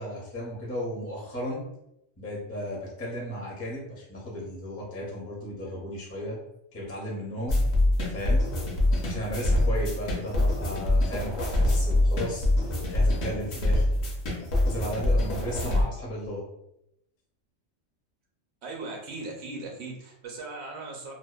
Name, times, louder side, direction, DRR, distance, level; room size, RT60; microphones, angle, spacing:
voice 1, 0.0-1.6 2.2-6.4 6.7-7.6 8.1-8.5 9.0-12.5 12.9-13.9 14.7-16.4, equal, 20° left, -5 dB, 0.4 m, -35 dB
sound 1, 7.5-15.8, left 1 dB, 65° left, 0.8 m, -25 dB
voice 2, 18.6-21.1, right 3 dB, 65° right, -1 dB, 0.8 m, -38 dB
2.6 x 2.1 x 2.2 m, 0.81 s
omnidirectional pair, 1.3 m